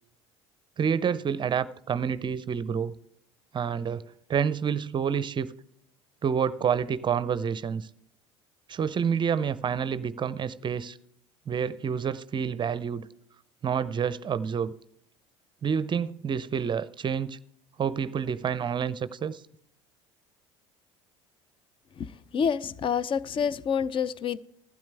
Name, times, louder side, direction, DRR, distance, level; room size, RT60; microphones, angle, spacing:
voice 1, 0.8-2.9 3.5-4.0 4.3-5.5 6.2-7.9 8.7-11.0 11.5-13.1 13.6-14.7 15.6-17.4 17.8-19.4, right 7 dB, 30° right, 0.6 m, -28 dB
voice 2, 22.0-24.4, left 7 dB, 35° left, 0.6 m, -28 dB
16.0 x 12.0 x 3.4 m
hypercardioid pair, 70°, 15 cm